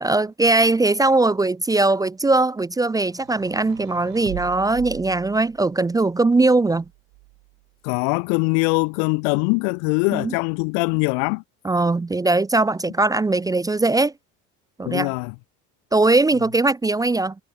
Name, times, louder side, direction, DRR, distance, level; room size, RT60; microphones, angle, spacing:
voice 1, 0.0-6.8 10.1-10.3 11.6-14.1 14.8-15.1 15.9-17.3, right 2 dB, 10° right, 0.6 m, -20 dB
sound 1, 3.1-5.8 6.7-7.7, right 31 dB, 80° right, 4.9 m, -40 dB
voice 2, 7.8-11.4 14.9-15.3, left 40 dB or more, 90° left, 2.9 m, -22 dB
cardioid pair, 125°, 33 cm